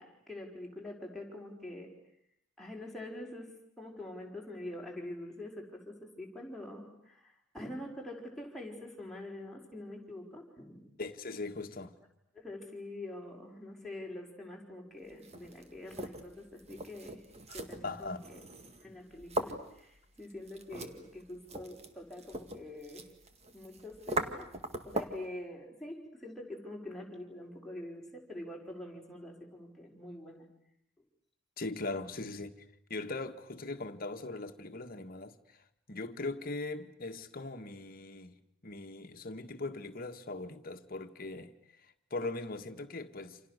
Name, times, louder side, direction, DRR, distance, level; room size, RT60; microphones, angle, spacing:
voice 1, 0.0-1.9 2.6-3.5 3.8-10.9 12.3-17.3 17.5-18.5 18.8-23.1 23.5-24.5 24.8-30.5, left 1 dB, ahead, 5.5 m, -45 dB
voice 2, 11.0-12.0 17.5-17.6 17.8-18.2 31.6-32.5 32.9-35.6 35.9-43.4, left 2 dB, 45° left, 1.7 m, -40 dB
sound 1, 15.1-25.3, right 2 dB, 30° right, 2.0 m, -41 dB
29.0 x 27.5 x 6.7 m
head